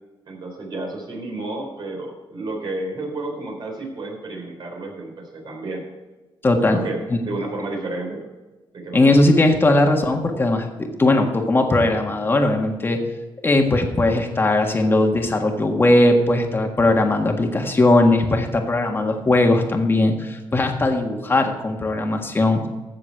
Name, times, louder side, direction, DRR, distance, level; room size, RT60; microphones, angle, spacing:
voice 1, 0.3-5.8 6.7-8.3 8.7-9.2, right 2 dB, 55° right, 1 dB, 3.7 m, -31 dB
voice 2, 6.4-6.8 7.1-7.2 8.9-13.0 13.4-22.6, left 2 dB, 25° left, 3 dB, 1.6 m, -19 dB
15.0 x 7.1 x 4.7 m, 1.2 s
wide cardioid pair, 135°, 9 cm